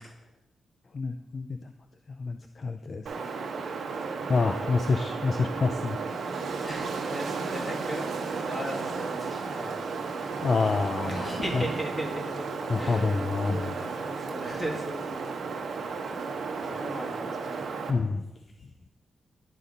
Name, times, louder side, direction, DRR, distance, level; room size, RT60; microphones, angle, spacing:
voice 1, 0.9-1.6 2.2-3.1 4.3-6.0 10.1-11.6 12.7-13.7 17.9-18.2, left 4 dB, 45° left, 7 dB, 0.4 m, -27 dB
Wind, 3.1-17.9, right 4 dB, 70° right, 1.0 m, -34 dB
voice 2, 6.6-9.8 10.9-15.2 16.6-17.7, equal, 20° left, -1 dB, 2.0 m, -37 dB
11.0 x 4.2 x 5.1 m, 1.0 s
cardioid pair, 100°, 0 cm